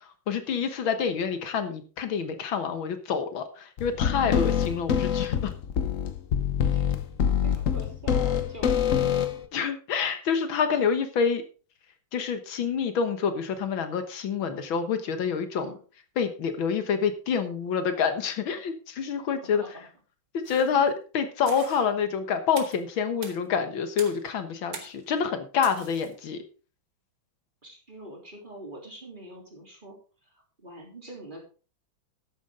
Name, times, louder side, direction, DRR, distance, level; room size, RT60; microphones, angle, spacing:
voice 1, 0.3-5.5 9.5-11.4 12.1-15.7 16.2-19.6 20.3-26.4, left 6 dB, 80° left, 9 dB, 2.0 m, -27 dB
sound 1, 3.8-9.4, left 8 dB, 50° left, 1.1 m, -25 dB
voice 2, 7.4-9.1 15.6-15.8 19.5-19.7 27.6-30.0 30.2-30.3 30.6-31.4, right 1 dB, 25° right, 0 dB, 3.5 m, -44 dB
sound 2, 20.4-20.8 21.5-21.8 22.6-22.8 23.2-23.4 24.0-24.3 24.7-25.0 25.6-26.1, right 5 dB, 70° right, 2.6 m, -42 dB
12.0 x 9.6 x 3.7 m, 0.36 s
omnidirectional pair, 2.1 m